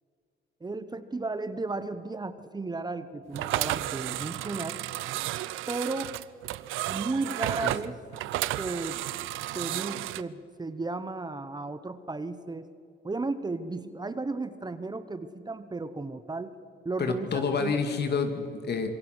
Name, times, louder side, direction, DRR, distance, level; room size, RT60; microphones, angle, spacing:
voice 1, 0.6-4.8 5.7-6.1 6.9-8.0 8.6-9.0 9.5-12.7 13.0-16.5 16.8-17.8, right 3 dB, 20° right, 12 dB, 1.1 m, -34 dB
sound 1, 3.3-10.2, right 15 dB, 90° right, 0.6 m, -32 dB
voice 2, 17.0-18.9, left 5 dB, 55° left, 6 dB, 2.6 m, -28 dB
26.0 x 22.5 x 6.2 m, 2.5 s
cardioid pair, 90°, 20 cm